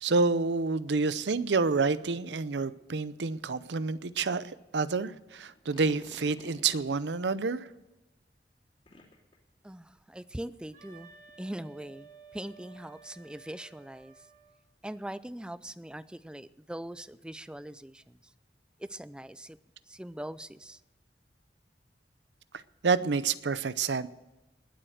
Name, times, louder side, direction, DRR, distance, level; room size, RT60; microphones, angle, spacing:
voice 1, 0.0-7.7 22.8-24.1, right 4 dB, 80° right, 0.6 m, -28 dB
sound 1, 5.5-7.1 8.9-9.4, left 2 dB, 30° left, 2.8 m, -53 dB
voice 2, 9.6-11.1 11.4-14.3 14.8-18.3 18.8-19.6 19.9-20.8, right 1 dB, 5° right, 0.4 m, -42 dB
Wind instrument woodwind instrument, 10.7-14.6, right 5 dB, 50° right, 5.4 m, -54 dB
20.0 x 7.8 x 6.4 m
head